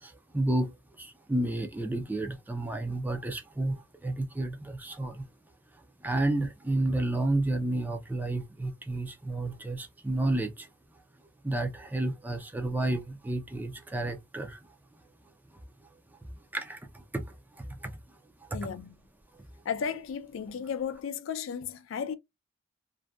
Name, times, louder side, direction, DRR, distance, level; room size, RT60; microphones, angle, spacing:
voice 1, 0.0-0.7 1.0-5.2 6.0-10.7 11.4-14.6 16.5-17.3 17.6-17.9 18.5-18.6 19.3-19.4, right 2 dB, 10° right, 0.3 m, -31 dB
voice 2, 18.5-19.0 19.6-22.1, left 7 dB, 75° left, 0.4 m, -34 dB
2.5 x 2.1 x 2.2 m
head